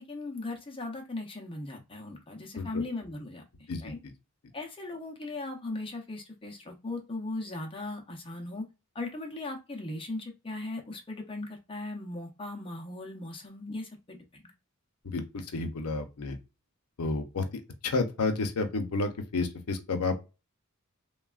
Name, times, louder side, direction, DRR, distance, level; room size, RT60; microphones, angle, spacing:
voice 1, 0.0-4.0 4.5-8.7 8.9-14.4, left 2 dB, 25° left, 0.7 m, -38 dB
voice 2, 15.5-16.4 17.0-17.4 17.8-20.2, left 3 dB, 85° left, 0.6 m, -30 dB
3.3 x 2.3 x 2.3 m
head